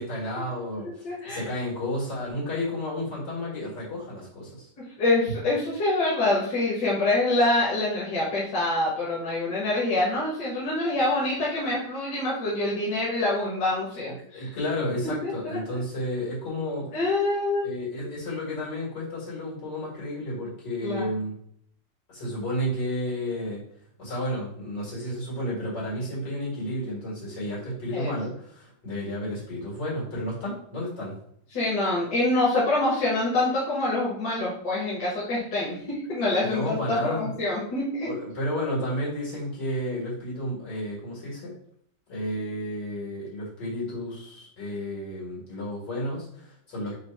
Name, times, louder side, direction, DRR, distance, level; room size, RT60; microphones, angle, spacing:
voice 1, 0.0-4.7 14.3-17.0 17.6-21.4 22.1-23.6 24.0-31.2 36.4-37.3 38.0-41.5 42.1-46.9, left 1 dB, 90° left, -6 dB, 2.7 m, -32 dB
voice 2, 0.8-1.5 5.0-14.5 15.2-15.8 16.9-17.7 20.8-21.1 27.9-28.1 31.5-38.1, left 2 dB, 70° left, -6 dB, 1.7 m, -26 dB
4.5 x 2.5 x 4.5 m, 0.66 s
omnidirectional pair, 1.8 m